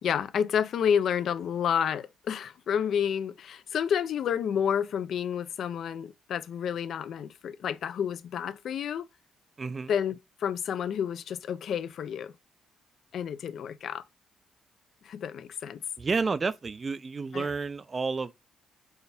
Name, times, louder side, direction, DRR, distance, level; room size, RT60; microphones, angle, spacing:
voice 1, 0.0-9.1 9.9-12.3 13.1-14.0 15.0-15.8 17.3-17.5, left 8 dB, 65° left, 0.3 m, -30 dB
voice 2, 9.6-9.9 16.0-18.3, right 4 dB, 35° right, 0.3 m, -30 dB
4.4 x 2.2 x 3.3 m
cardioid pair, 90°, 0 cm